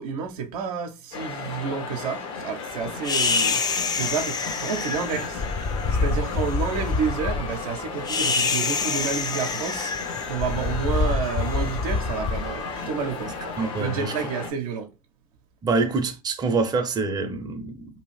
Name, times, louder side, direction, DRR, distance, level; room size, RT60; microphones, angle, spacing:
voice 1, 0.0-3.6 3.9-5.4 6.0-9.9 10.3-13.5 13.8-14.9, right 6 dB, 70° right, 0.6 m, -30 dB
sound 1, 1.1-14.5, left 4 dB, 60° left, 0.9 m, -35 dB
sound 2, 3.0-13.4, left 4 dB, 20° left, 0.4 m, -27 dB
voice 2, 13.6-14.1 15.6-17.9, right 4 dB, 20° right, 0.6 m, -25 dB
2.7 x 2.4 x 3.1 m
hypercardioid pair, 80°, 19 cm